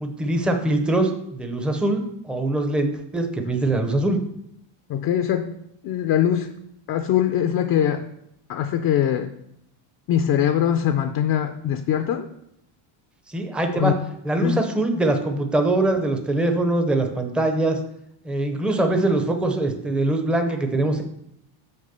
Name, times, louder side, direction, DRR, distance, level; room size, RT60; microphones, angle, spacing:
voice 1, 0.0-4.2 13.3-13.9 14.2-17.8 18.2-21.0, right 2 dB, ahead, 5 dB, 0.5 m, -23 dB
voice 2, 4.9-5.5 5.8-6.5 6.9-8.1 8.5-9.3 10.1-12.3 13.7-13.9 14.4-14.6, left 10 dB, 45° left, 7 dB, 0.5 m, -22 dB
6.6 x 4.8 x 6.7 m, 0.77 s
cardioid pair, 165°, 50 cm